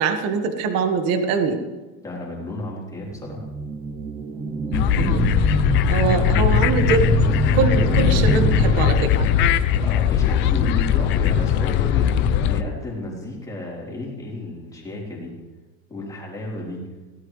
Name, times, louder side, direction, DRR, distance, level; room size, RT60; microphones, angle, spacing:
voice 1, 0.0-1.6 5.0-5.2 5.9-7.1 7.5-9.3, right 4 dB, 40° right, 6 dB, 1.6 m, -23 dB
voice 2, 2.0-3.5 5.9-7.2 9.8-15.3 15.9-16.8, left 2 dB, 10° left, -4 dB, 3.7 m, -33 dB
sound 1, 3.1-9.4, right 4 dB, 15° right, 0.7 m, -25 dB
sound 2, 4.7-12.6, left 9 dB, 30° left, 0.6 m, -20 dB
22.5 x 17.5 x 3.3 m, 1.2 s
cardioid pair, 175°, 37 cm